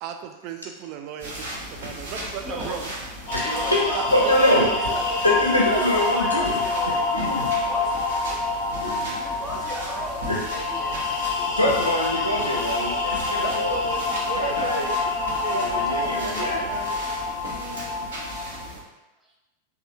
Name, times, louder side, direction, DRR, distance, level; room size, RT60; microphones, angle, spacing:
voice 1, 0.0-2.9 3.9-5.0 13.4-17.0 17.4-18.0, right 7 dB, 40° right, 6 dB, 0.3 m, -35 dB
sound 1, 1.2-18.8, equal, 60° right, 0.9 m, -37 dB
voice 2, 2.4-2.8 3.4-5.2 5.5-7.1 7.3-8.4 9.1-11.0 19.2-19.3, right 1 dB, 10° right, -3 dB, 0.7 m, -36 dB
voice 3, 3.3-3.8 4.1-4.7 5.2-7.5 8.8-9.2 10.3-10.4 11.6-13.8 14.3-14.9 15.5-16.7 17.7-17.8, left 1 dB, 85° left, -3 dB, 0.5 m, -24 dB
sound 2, 3.3-18.6, left 3 dB, 35° left, 0.8 m, -27 dB
3.2 x 2.3 x 2.8 m, 1.1 s
figure-of-eight pair, 90°, 0 cm